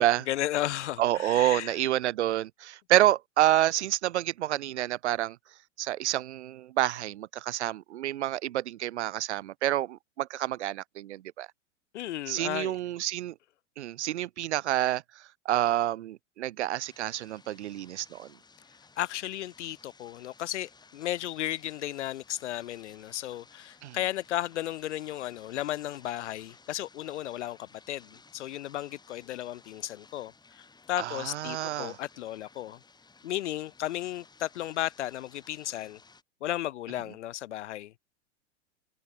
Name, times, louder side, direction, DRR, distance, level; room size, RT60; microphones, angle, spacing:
voice 1, 0.0-1.7 11.9-12.8 19.0-32.8 33.2-36.0 36.4-38.0, left 13 dB, 70° left, 0.6 m, -34 dB
voice 2, 1.0-5.4 5.8-11.5 12.3-13.3 13.8-18.3 23.8-24.0 31.0-32.0, right 13 dB, 65° right, 0.8 m, -28 dB
sound 1, 16.8-36.2, left 4 dB, 10° left, 4.2 m, -58 dB
figure-of-eight pair, 100°, 37 cm